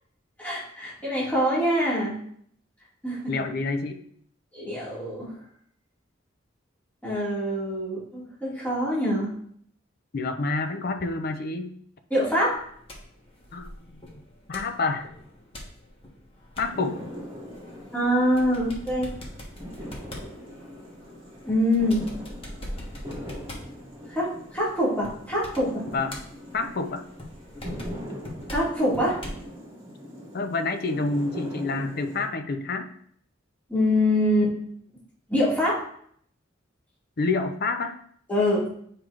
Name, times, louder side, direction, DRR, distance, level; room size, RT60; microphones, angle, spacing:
voice 1, 0.4-2.2 3.0-3.3 4.5-5.3 7.0-9.3 12.1-12.6 17.9-19.1 21.4-22.1 24.1-25.9 28.5-29.2 33.7-34.5 35.3-35.8 38.3-38.7, equal, 10° left, -9 dB, 2.0 m, -24 dB
voice 2, 3.3-4.0 10.1-11.7 13.5-14.0 14.5-15.1 16.6-17.0 25.9-26.2 26.5-27.0 30.3-32.9 37.2-38.0, left 3 dB, 50° left, 7 dB, 0.6 m, -28 dB
sound 1, 12.5-29.5, left 1 dB, 30° left, 1.2 m, -43 dB
sound 2, 16.6-32.3, equal, 20° right, 1.8 m, -41 dB
9.3 x 4.8 x 2.5 m, 0.65 s
head